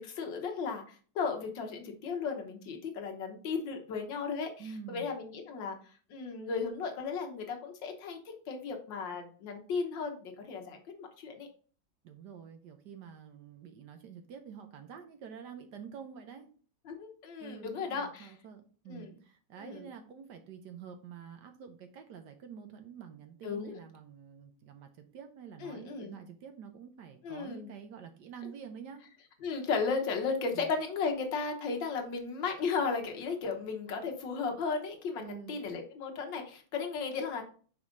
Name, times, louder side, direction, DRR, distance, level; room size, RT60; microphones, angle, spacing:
voice 1, 0.0-5.8 6.1-8.2 8.5-11.5 16.9-18.3 18.9-19.1 19.6-19.9 23.4-23.8 25.6-26.2 27.2-27.7 29.4-37.4, left 5 dB, 65° left, 3 dB, 1.6 m, -35 dB
voice 2, 4.6-5.1 12.0-16.5 17.4-29.0 30.5-30.7 35.2-35.6, right 7 dB, 65° right, 7 dB, 1.2 m, -48 dB
5.2 x 4.9 x 3.7 m, 0.42 s
omnidirectional pair, 2.2 m